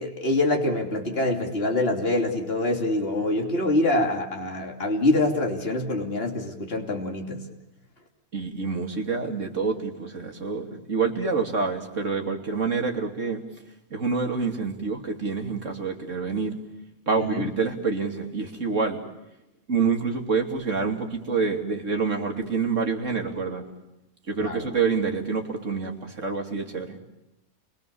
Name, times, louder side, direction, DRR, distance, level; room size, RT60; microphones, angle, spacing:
voice 1, 0.0-7.4 17.2-17.5 24.4-24.7, left 2 dB, 45° left, 2 dB, 3.2 m, -25 dB
voice 2, 8.3-13.4 13.9-16.6 17.1-19.0 19.7-23.7 24.3-27.0, right 4 dB, 55° right, 3 dB, 3.2 m, -27 dB
30.0 x 23.5 x 7.1 m, 0.92 s
omnidirectional pair, 1.5 m